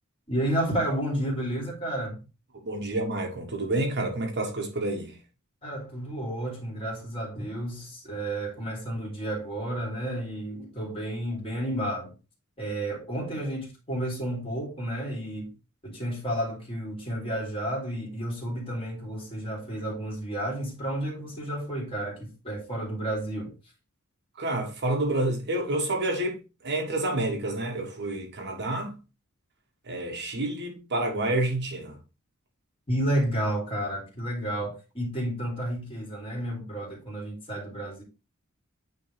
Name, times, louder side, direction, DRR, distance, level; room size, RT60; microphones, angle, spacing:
voice 1, 0.3-2.2 5.6-12.1 12.6-15.5 15.8-23.5 32.9-38.0, right 1 dB, 25° left, 2.8 m, -31 dB
voice 2, 2.6-5.1 24.4-26.4 26.6-29.0 29.9-32.0, right 2 dB, 55° right, 1.4 m, -29 dB
8.9 x 3.5 x 3.3 m
head